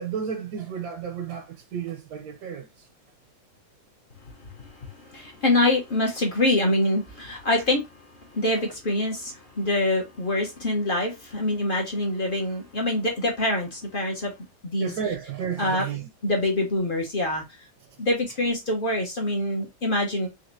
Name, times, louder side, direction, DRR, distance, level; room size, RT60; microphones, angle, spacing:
voice 1, 0.0-2.7 14.8-16.1, right 7 dB, 65° right, 0.9 m, -32 dB
voice 2, 4.2-14.3 14.6-14.9 15.6-15.8 16.2-17.4 18.0-20.3, left 1 dB, 40° left, 0.7 m, -25 dB
4.2 x 3.2 x 2.6 m
omnidirectional pair, 2.2 m